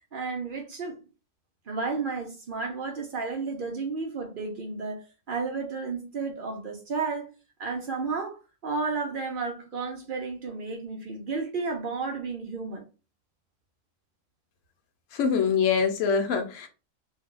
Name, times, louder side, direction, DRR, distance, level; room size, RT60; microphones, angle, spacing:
voice 1, 0.1-1.0 1.7-7.3 7.6-12.8, right 4 dB, 60° right, 0.5 m, -32 dB
voice 2, 15.1-16.7, left 6 dB, 60° left, 0.9 m, -24 dB
2.7 x 2.2 x 3.7 m
omnidirectional pair, 1.6 m